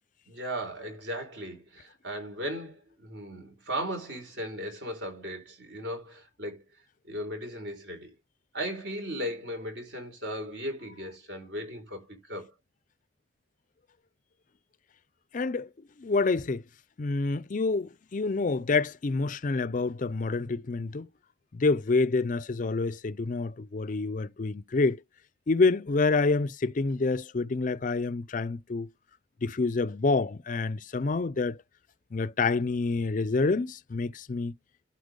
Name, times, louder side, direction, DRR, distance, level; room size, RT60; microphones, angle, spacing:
voice 1, 0.3-6.6 7.1-8.1 8.5-12.5, equal, 60° right, 4.5 m, -37 dB
voice 2, 15.3-15.7 16.0-16.6 17.0-21.1 21.5-25.0 25.5-28.9 29.4-31.6 32.1-34.5, left 3 dB, 40° left, 0.4 m, -27 dB
12.0 x 4.4 x 5.1 m
head